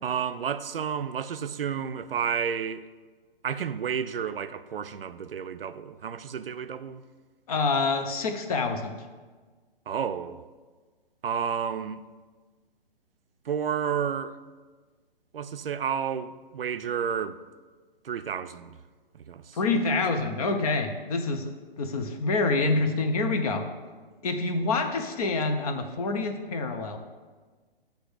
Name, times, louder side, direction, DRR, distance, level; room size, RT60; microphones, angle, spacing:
voice 1, 0.0-2.8 3.4-7.0 9.9-10.4 11.2-12.0 13.5-14.4 15.3-17.4 18.0-18.8 19.1-19.6, right 7 dB, 75° right, 0.5 m, -31 dB
voice 2, 7.5-9.0 19.5-23.6 24.2-27.0, left 3 dB, 40° left, 0.8 m, -27 dB
7.7 x 3.5 x 6.4 m
figure-of-eight pair, 135°, 29 cm